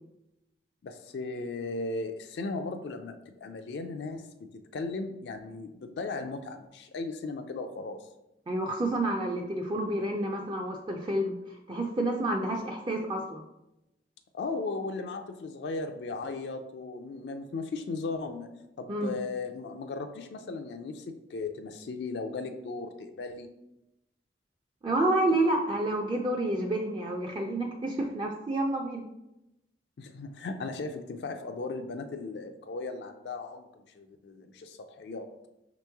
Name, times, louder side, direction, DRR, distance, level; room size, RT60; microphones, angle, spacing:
voice 1, 0.8-8.1 14.3-18.5 18.8-23.5 30.0-35.3, left 3 dB, 65° left, 6 dB, 0.4 m, -37 dB
voice 2, 8.5-13.4 18.9-19.2 24.8-29.0, right 1 dB, 25° right, 1 dB, 0.4 m, -29 dB
5.1 x 3.0 x 3.4 m, 0.91 s
head